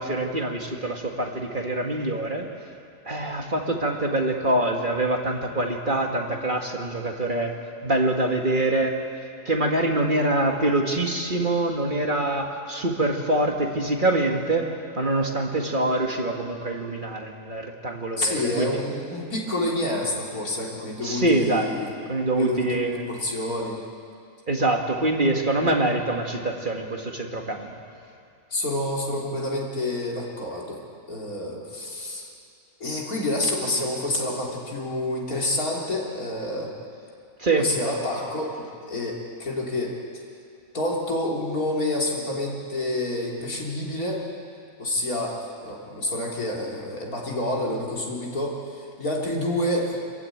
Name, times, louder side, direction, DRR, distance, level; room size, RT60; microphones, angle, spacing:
voice 1, 0.0-2.5 3.1-7.6 7.8-9.0 9.5-14.6 15.0-18.8 21.0-21.7 22.1-23.1 24.5-27.7 37.4-37.7, right 2 dB, 35° right, 2 dB, 1.9 m, -25 dB
voice 2, 18.2-21.9 22.3-22.8 23.1-23.8 28.5-30.8 31.1-32.3 32.8-36.7 37.6-40.0 40.7-44.2 44.8-50.0, left 1 dB, 85° left, -3 dB, 3.9 m, -28 dB
26.5 x 15.0 x 9.1 m, 2.4 s
omnidirectional pair, 1.5 m